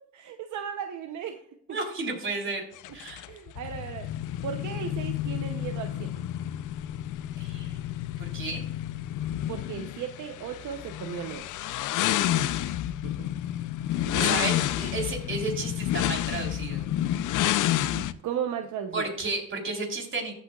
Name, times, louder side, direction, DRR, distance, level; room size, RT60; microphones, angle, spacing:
voice 1, 0.2-1.4 3.3-4.1 4.4-6.1 9.5-11.5 12.2-12.4 13.0-13.4 14.0-14.4 17.9-19.1, right 8 dB, 75° right, 6 dB, 0.9 m, -36 dB
voice 2, 1.7-2.7 2.9-3.2 7.4-7.9 8.2-8.6 14.1-16.9 18.9-20.3, right 3 dB, 40° right, 1 dB, 3.8 m, -32 dB
sound 1, 2.8-18.1, left 12 dB, 80° left, 0.6 m, -30 dB
14.5 x 8.6 x 2.4 m, 0.65 s
cardioid pair, 90°, 30 cm